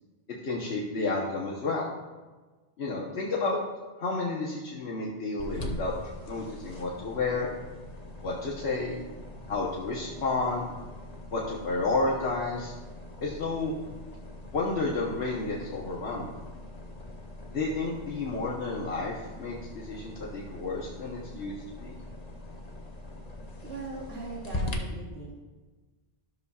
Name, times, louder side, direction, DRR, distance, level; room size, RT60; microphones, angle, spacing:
voice 1, 0.4-1.9 2.8-3.6 4.0-5.9 6.3-7.5 8.2-9.0 9.5-10.7 11.3-12.7 13.2-13.8 14.5-16.3 17.5-22.0, left 3 dB, 75° left, -3 dB, 1.3 m, -31 dB
sound 1, 5.4-24.8, left 2 dB, 40° left, 1.1 m, -42 dB
voice 2, 23.6-25.3, right 3 dB, 70° right, -6 dB, 1.6 m, -40 dB
13.5 x 6.8 x 2.4 m, 1.3 s
omnidirectional pair, 1.1 m